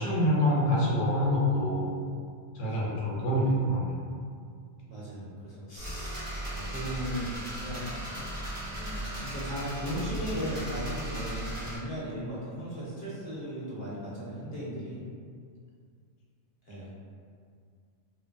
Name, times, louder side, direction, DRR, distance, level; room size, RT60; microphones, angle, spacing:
voice 1, 0.0-1.8 2.6-4.1, equal, 85° left, -4 dB, 1.0 m, -26 dB
voice 2, 2.6-2.9 4.8-7.9 8.7-15.0 16.6-16.9, equal, 50° left, -8 dB, 1.0 m, -37 dB
sound 1, 5.8-11.8, right 1 dB, 45° right, 0.9 m, -37 dB
3.1 x 2.2 x 2.5 m, 2.2 s
omnidirectional pair, 1.3 m